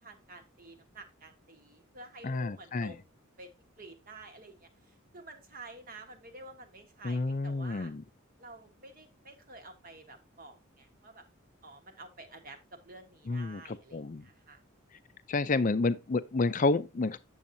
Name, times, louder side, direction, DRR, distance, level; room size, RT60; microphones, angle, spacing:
voice 1, 0.0-3.1 3.4-3.5 3.8-7.9 8.4-11.2 11.6-14.6, right 2 dB, 40° right, 1.3 m, -50 dB
voice 2, 2.2-2.9 7.0-8.0 13.3-13.6 13.9-14.3 15.3-17.2, left 3 dB, 40° left, 0.4 m, -29 dB
8.8 x 7.1 x 2.7 m
head